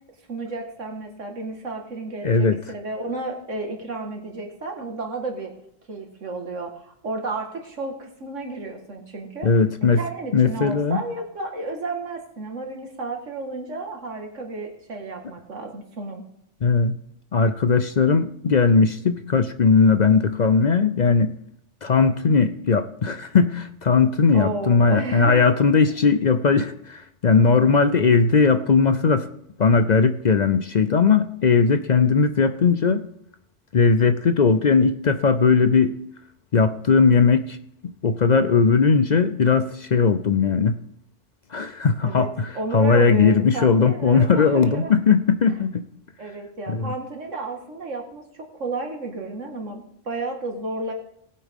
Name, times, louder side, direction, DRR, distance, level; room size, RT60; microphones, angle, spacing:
voice 1, 0.3-5.5 5.9-9.5 9.8-16.2 24.3-25.5 42.0-42.3 42.5-44.9 46.2-48.2 48.5-50.9, right 3 dB, 80° right, 3 dB, 2.2 m, -32 dB
voice 2, 2.2-2.6 9.4-10.0 10.3-11.0 16.6-16.9 17.3-21.3 21.8-29.3 29.6-33.0 33.7-35.9 36.5-37.6 38.0-40.8 41.5-45.8 46.7-46.9, left 5 dB, 50° left, 10 dB, 0.6 m, -18 dB
19.0 x 8.5 x 3.6 m, 0.75 s
omnidirectional pair, 1.3 m